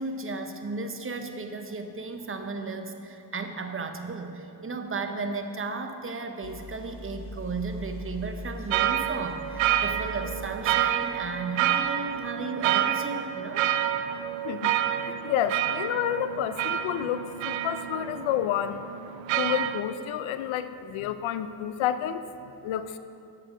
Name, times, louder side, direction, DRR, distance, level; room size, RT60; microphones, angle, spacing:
voice 1, 0.0-13.7, right 3 dB, 25° right, 6 dB, 0.7 m, -34 dB
sound 1, 6.4-12.2, left 1 dB, 35° left, 0.8 m, -42 dB
sound 2, 8.7-19.8, right 11 dB, 75° right, 0.5 m, -28 dB
voice 2, 15.0-18.8 19.4-22.2 22.6-23.0, left 10 dB, 80° left, 12 dB, 0.6 m, -29 dB
7.5 x 7.3 x 4.9 m, 2.6 s
cardioid pair, 80°, 47 cm